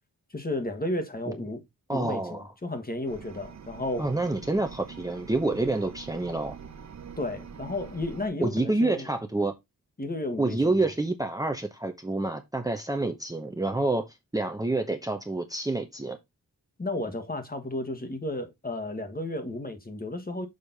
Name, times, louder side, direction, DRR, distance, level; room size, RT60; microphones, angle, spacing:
voice 1, 0.3-1.6 1.9-4.1 7.2-9.1 10.0-10.9 16.8-20.5, left 1 dB, 25° left, 1.5 m, -33 dB
voice 2, 1.9-2.5 4.0-6.5 8.4-9.5 10.4-16.2, right 2 dB, 10° right, 0.9 m, -28 dB
sound 1, 3.1-8.3, right 7 dB, 55° right, 0.9 m, -45 dB
6.7 x 5.4 x 4.0 m
wide cardioid pair, 120°, 34 cm